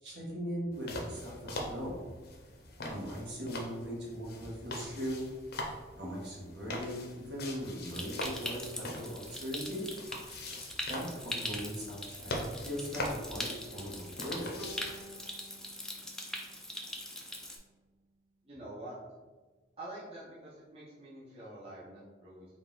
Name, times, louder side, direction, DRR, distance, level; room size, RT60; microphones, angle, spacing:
voice 1, 0.0-2.0 2.9-5.3 6.0-9.9 10.9-12.3 12.6-14.8, equal, 60° right, -4 dB, 1.2 m, -39 dB
sound 1, 0.7-15.0, left 1 dB, 55° left, 0.6 m, -43 dB
Stream, 7.8-17.6, left 1 dB, 5° left, 0.3 m, -42 dB
Bowed string instrument, 14.6-17.6, right 1 dB, 85° right, 0.5 m, -52 dB
voice 2, 18.4-19.0 19.8-22.5, right 1 dB, 30° right, -9 dB, 0.8 m, -46 dB
3.9 x 2.4 x 3.8 m, 1.3 s
head